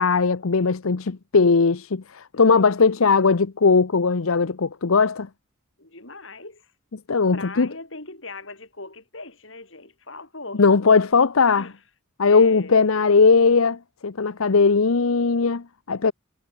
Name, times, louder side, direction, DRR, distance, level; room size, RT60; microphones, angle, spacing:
voice 1, 0.0-5.3 7.1-7.7 10.6-11.6 12.2-16.1, left 4 dB, 90° left, 0.8 m, -19 dB
voice 2, 2.4-3.1 5.8-6.7 7.3-10.7 10.9-11.0 11.6-11.8 12.2-12.8, left 3 dB, 65° left, 7.3 m, -40 dB
head